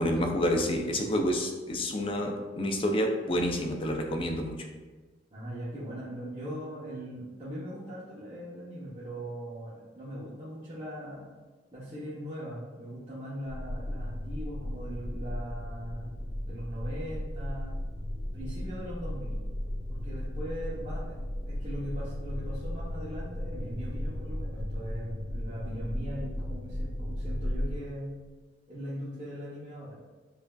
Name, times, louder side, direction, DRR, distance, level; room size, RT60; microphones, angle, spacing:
voice 1, 0.0-4.6, equal, 30° left, 3 dB, 0.4 m, -28 dB
voice 2, 5.3-11.3 11.7-16.1 16.4-17.8 18.3-19.4 19.9-28.1 28.7-29.9, equal, 30° right, -11 dB, 0.8 m, -40 dB
sound 1, 13.5-27.7, left 1 dB, 75° left, 0.7 m, -35 dB
5.4 x 2.5 x 2.2 m, 1.3 s
head